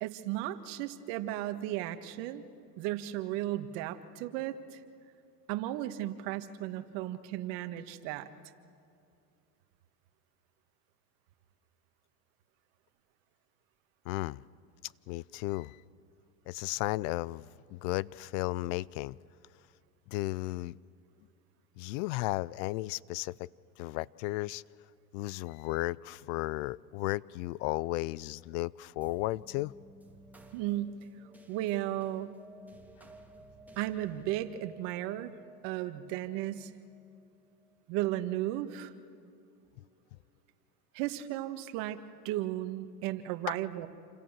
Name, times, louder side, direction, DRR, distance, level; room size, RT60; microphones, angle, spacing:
voice 1, 0.0-2.4 2.8-4.8 5.5-8.3 30.5-31.0 31.5-32.3 33.8-35.3 35.6-36.7 37.9-38.9 40.9-43.9, right 14 dB, 55° right, 1.8 m, -35 dB
voice 2, 14.1-14.4 14.8-15.8 16.5-19.2 20.1-20.8 21.8-23.5 23.8-24.6 25.1-29.7, left 20 dB, 50° left, 0.5 m, -34 dB
sound 1, 29.0-37.7, right 1 dB, 5° right, 2.9 m, -55 dB
28.5 x 26.5 x 7.5 m
hypercardioid pair, 100°, 50 cm